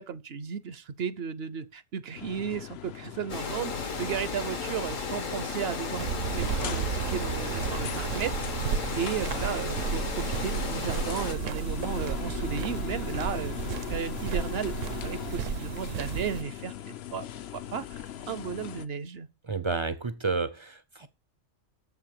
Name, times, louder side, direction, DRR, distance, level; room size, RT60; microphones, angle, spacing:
voice 1, 0.0-8.5 8.9-16.7 17.1-17.3 17.5-19.3, right 7 dB, 60° right, 0.8 m, -34 dB
sound 1, 2.1-18.9, left 11 dB, 60° left, 0.8 m, -40 dB
Water, 3.3-11.3, left 4 dB, 80° left, 1.9 m, -35 dB
sound 2, 6.0-16.4, right 7 dB, 75° right, 1.2 m, -33 dB
voice 2, 19.5-21.1, right 4 dB, 40° right, 0.4 m, -30 dB
7.1 x 5.8 x 7.4 m
omnidirectional pair, 1.3 m